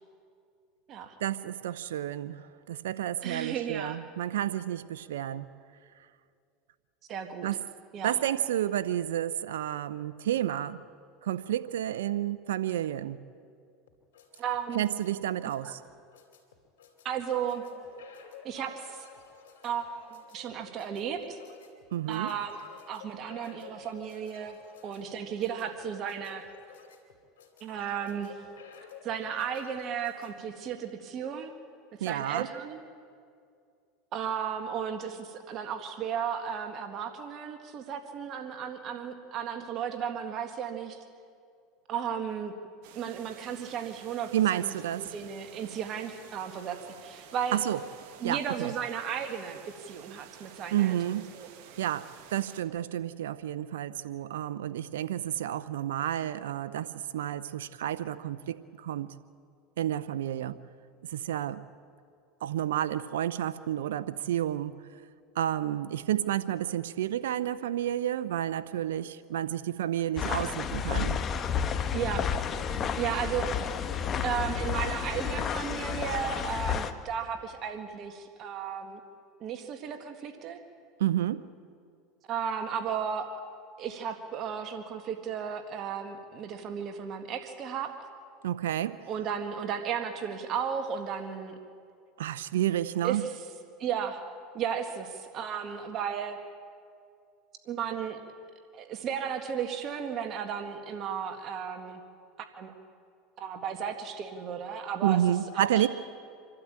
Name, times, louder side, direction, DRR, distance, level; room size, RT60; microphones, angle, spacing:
voice 1, 1.2-5.5 7.4-7.6 8.0-10.8 11.2-13.2 14.7-15.8 21.9-22.3 32.0-32.5 44.3-45.1 47.5-47.8 48.2-48.7 50.7-51.3 51.8-59.1 59.8-60.6 61.1-61.6 62.4-64.8 65.4-71.2 81.0-81.4 88.4-89.0 92.2-93.2 105.0-105.9, right 12 dB, 85° right, 15 dB, 0.6 m, -30 dB
voice 2, 3.2-4.0 7.1-7.5 7.9-8.2 14.4-14.9 15.6-15.7 17.0-17.6 18.4-19.1 19.6-21.4 22.1-22.6 22.9-24.6 24.8-26.5 27.6-28.4 29.0-31.5 32.0-32.8 34.1-41.0 41.9-42.5 43.0-47.6 48.2-51.0 51.3-51.5 71.9-72.2 73.0-73.5 74.2-79.0 79.4-80.6 82.3-83.3 83.8-87.9 89.1-91.5 93.0-93.3 93.8-94.2 94.5-96.4 97.7-98.2 98.7-102.0 102.6-102.7 103.4-105.2 105.6-105.9, right 8 dB, 45° right, 6 dB, 1.8 m, -34 dB
sound 1, 13.9-30.3, left 6 dB, 90° left, 3.1 m, -52 dB
sound 2, 42.8-52.6, right 9 dB, 65° right, 1.6 m, -52 dB
sound 3, 70.2-76.9, left 7 dB, 35° left, 1.3 m, -31 dB
26.5 x 12.5 x 8.8 m, 2.3 s
hypercardioid pair, 100°, 0 cm